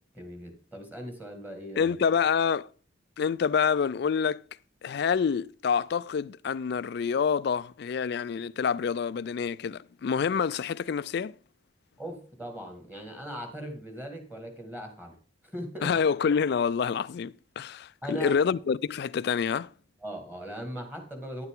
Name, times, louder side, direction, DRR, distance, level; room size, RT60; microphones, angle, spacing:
voice 1, 0.1-2.0 12.0-15.1 15.4-15.9 18.0-18.3 20.0-21.5, equal, 10° right, 1.9 m, -39 dB
voice 2, 1.8-2.7 3.2-4.4 4.8-11.4 15.8-19.7, left 6 dB, 55° left, 0.3 m, -27 dB
10.0 x 8.1 x 3.7 m
head